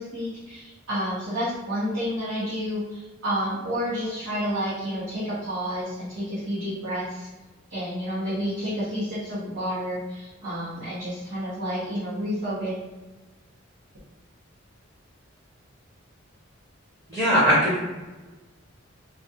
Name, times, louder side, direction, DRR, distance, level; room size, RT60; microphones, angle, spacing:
voice 1, 0.0-7.3 7.7-12.8, equal, 70° right, -12 dB, 0.8 m, -30 dB
voice 2, 17.1-17.8, equal, ahead, -10 dB, 0.7 m, -20 dB
2.3 x 2.3 x 2.7 m, 1.2 s
head